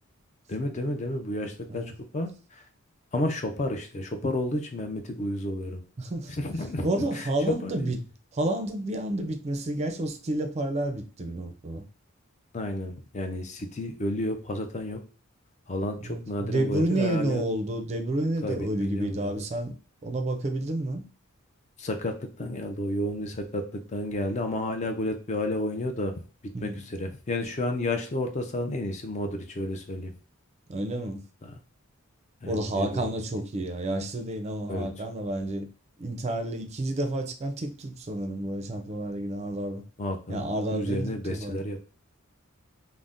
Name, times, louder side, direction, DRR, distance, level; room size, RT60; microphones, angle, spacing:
voice 1, 0.5-1.9 2.1-2.6 3.1-5.8 6.4-6.9 7.2-7.3 7.6-7.9 12.5-15.0 15.7-17.4 18.4-19.4 21.8-26.1 26.6-30.1 31.4-31.5 32.4-33.1 34.7-34.9 40.0-41.8, left 1 dB, 35° left, 0.5 m, -31 dB
voice 2, 6.0-6.3 6.8-8.0 8.3-11.8 16.0-19.7 20.0-21.0 26.5-26.8 30.7-31.2 32.4-35.7 36.0-39.8 40.3-41.6, right 1 dB, 30° right, 0.4 m, -30 dB
2.6 x 2.1 x 3.5 m
head